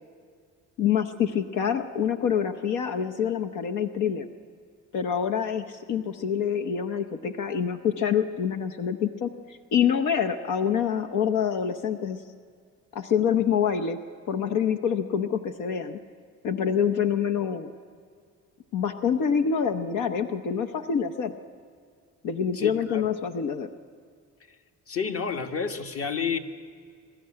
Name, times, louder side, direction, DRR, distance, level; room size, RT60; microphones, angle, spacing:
voice 1, 0.8-4.3 4.9-12.2 12.9-14.0 14.3-16.0 16.4-17.7 18.7-21.3 22.2-23.7, left 7 dB, 90° left, 7 dB, 0.9 m, -26 dB
voice 2, 22.5-23.0 24.9-26.4, left 6 dB, 50° left, 5 dB, 1.5 m, -30 dB
22.5 x 13.0 x 9.7 m, 2.2 s
cardioid pair, 90°, 30 cm